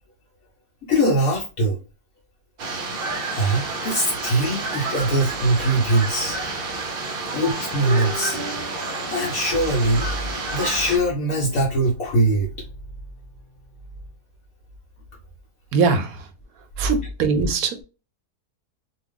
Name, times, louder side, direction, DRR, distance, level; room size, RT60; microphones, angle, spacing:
voice 1, 0.8-1.8 3.3-6.4 7.3-8.4 9.1-10.1 10.5-12.5, right 1 dB, 65° left, 1.2 m, -21 dB
sound 1, 2.6-11.0, right 3 dB, 55° right, 0.6 m, -30 dB
sound 2, 7.4-14.1, left 1 dB, 5° right, 0.6 m, -40 dB
voice 2, 15.7-16.2 16.8-17.8, right 5 dB, 70° right, 1.0 m, -21 dB
2.6 x 2.3 x 3.5 m
omnidirectional pair, 1.7 m